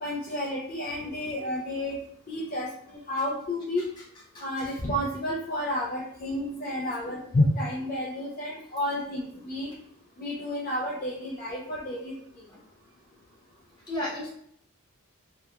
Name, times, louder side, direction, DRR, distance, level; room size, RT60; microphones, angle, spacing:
voice 1, 0.0-2.0 2.3-3.8 4.4-9.7 10.2-12.1, left 1 dB, 40° left, -5 dB, 0.4 m, -30 dB
voice 2, 4.3-4.8 12.5-12.6 13.9-14.3, left 1 dB, 20° left, -7 dB, 0.8 m, -35 dB
2.8 x 2.3 x 2.3 m, 0.67 s
head